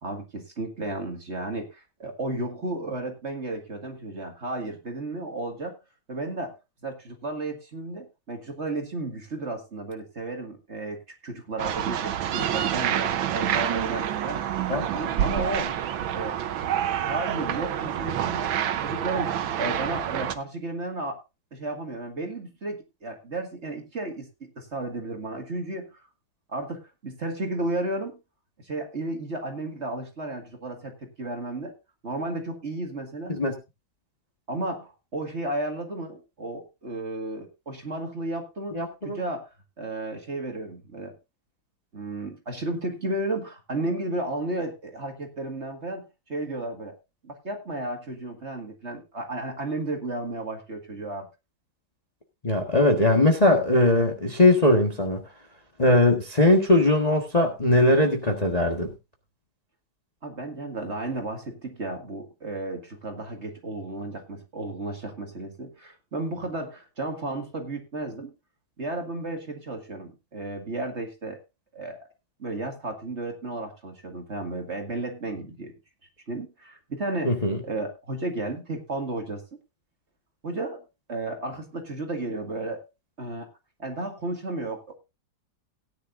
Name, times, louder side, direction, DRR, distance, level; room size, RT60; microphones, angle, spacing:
voice 1, 0.0-5.8 6.1-6.5 6.8-14.7 14.9-15.7 16.1-16.4 16.9-21.2 21.5-26.0 26.5-28.2 28.6-31.7 32.0-33.4 34.5-41.1 41.9-46.9 47.2-51.3 60.2-68.4 68.8-71.4 71.7-72.0 72.4-75.7 76.3-77.4 77.6-79.4 80.4-80.8 81.1-82.8 83.2-83.5 83.8-85.0, right 2 dB, 35° right, 2.1 m, -33 dB
sound 1, 11.6-20.3, right 10 dB, 85° right, 1.7 m, -27 dB
voice 2, 38.7-39.2 52.4-55.2 55.8-58.9 77.2-77.6, left 2 dB, 20° left, 1.4 m, -20 dB
17.0 x 10.0 x 2.6 m
omnidirectional pair, 2.1 m